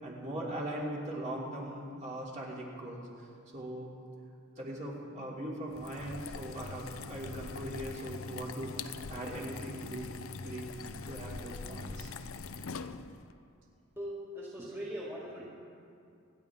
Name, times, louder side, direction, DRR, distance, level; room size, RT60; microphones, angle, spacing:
voice 1, 0.0-3.1 3.5-3.9 4.6-10.1 10.4-10.7 11.1-12.1, right 1 dB, 35° right, -4 dB, 2.9 m, -40 dB
sound 1, 5.7-13.3, left 4 dB, 85° left, 0.6 m, -43 dB
voice 2, 14.0-15.4, equal, 15° right, -7 dB, 2.0 m, -40 dB
27.5 x 10.5 x 3.6 m, 2.4 s
head